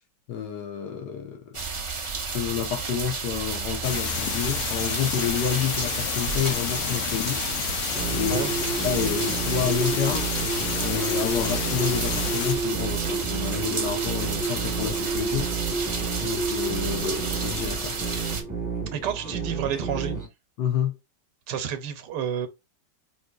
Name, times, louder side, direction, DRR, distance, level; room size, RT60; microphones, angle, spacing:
voice 1, 0.3-1.4 2.3-7.4 8.1-8.5 8.8-10.3 10.8-15.5 16.2-17.9 20.6-20.9, left 8 dB, 70° left, 1.6 m, -29 dB
sound 1, 1.5-18.4, right 4 dB, 50° right, 0.3 m, -32 dB
sound 2, 3.8-12.6, left 9 dB, 90° left, 0.6 m, -30 dB
sound 3, 7.9-20.3, right 4 dB, 15° right, 0.9 m, -30 dB
voice 2, 18.9-20.2 21.5-22.5, right 8 dB, 80° right, 1.3 m, -30 dB
5.1 x 3.1 x 2.3 m
omnidirectional pair, 1.9 m